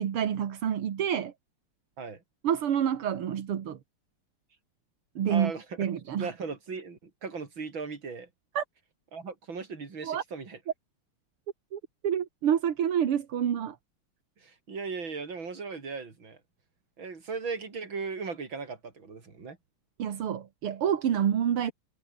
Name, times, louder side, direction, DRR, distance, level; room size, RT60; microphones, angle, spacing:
voice 1, 0.0-1.3 2.4-3.8 5.2-5.5 5.8-6.3 8.6-8.7 10.0-10.2 11.7-13.8 20.0-21.7, right 9 dB, 80° right, 2.5 m, -28 dB
voice 2, 5.3-5.9 6.2-8.3 9.1-10.6 14.4-16.4 17.0-19.6, right 4 dB, 60° right, 4.4 m, -37 dB
omnidirectional pair, 2.4 m